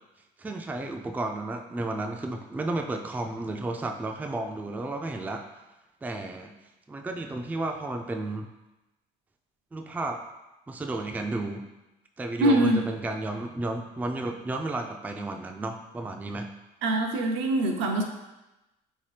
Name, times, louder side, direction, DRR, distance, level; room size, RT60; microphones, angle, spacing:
voice 1, 0.4-5.4 6.0-6.5 6.9-8.5 9.7-10.2 10.7-11.6 12.2-16.5, right 2 dB, 10° right, 4 dB, 0.3 m, -32 dB
voice 2, 12.4-12.8 16.8-18.0, right 1 dB, 75° right, 2 dB, 0.6 m, -23 dB
3.4 x 2.8 x 3.2 m, 1.0 s
supercardioid pair, 70°, 20 cm